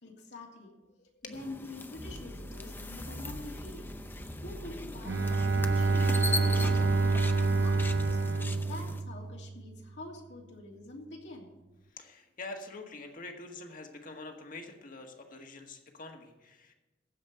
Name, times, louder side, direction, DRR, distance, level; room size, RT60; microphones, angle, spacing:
voice 1, 0.0-0.7 1.2-3.9 4.4-8.1 8.7-11.5, left 2 dB, 75° left, -1 dB, 2.9 m, -46 dB
sound 1, 1.3-9.0, left 2 dB, 10° left, 0.6 m, -40 dB
sound 2, 2.0-8.2, equal, 20° right, 1.4 m, -44 dB
Bowed string instrument, 5.0-9.7, right 3 dB, 75° right, 0.7 m, -27 dB
voice 2, 11.9-16.7, left 3 dB, 50° left, 3 dB, 1.7 m, -45 dB
15.5 x 5.3 x 9.1 m, 1.0 s
head